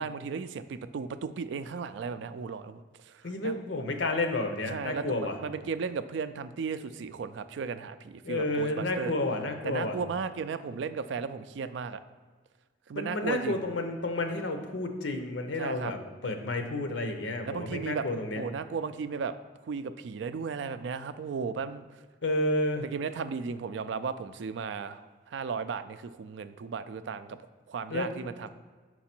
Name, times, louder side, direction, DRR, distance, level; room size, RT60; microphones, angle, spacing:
voice 1, 0.0-3.5 4.7-9.1 9.6-12.0 12.9-13.6 15.6-15.9 17.5-18.1 18.4-19.3 19.7-21.8 22.8-27.4 27.7-28.5, right 5 dB, 75° right, 12 dB, 0.3 m, -35 dB
voice 2, 3.2-5.3 8.2-10.0 13.0-18.4 22.2-22.8 27.9-28.1, left 2 dB, 80° left, 5 dB, 0.8 m, -31 dB
5.9 x 4.7 x 4.4 m, 1.5 s
head